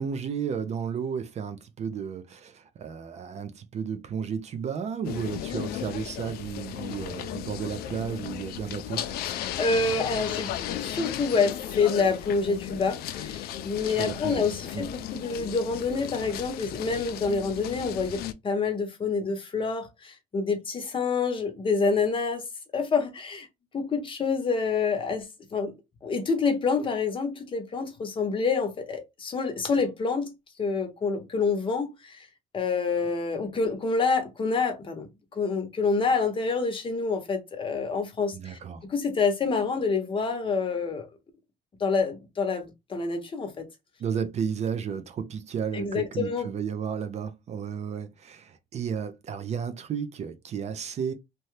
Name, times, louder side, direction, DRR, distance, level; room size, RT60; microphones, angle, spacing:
voice 1, 0.0-9.1 14.0-14.4 14.7-14.9 38.3-38.9 44.0-51.1, right 7 dB, 45° right, 0.5 m, -33 dB
sound 1, 5.0-18.3, left 10 dB, 70° left, 0.4 m, -35 dB
voice 2, 9.2-10.5 10.8-22.4 22.7-23.5 23.7-25.7 26.0-32.3 32.5-38.6 38.9-41.1 41.8-43.7 45.7-46.5, left 4 dB, 30° left, 0.8 m, -27 dB
2.8 x 2.2 x 3.1 m
cardioid pair, 115°, 16 cm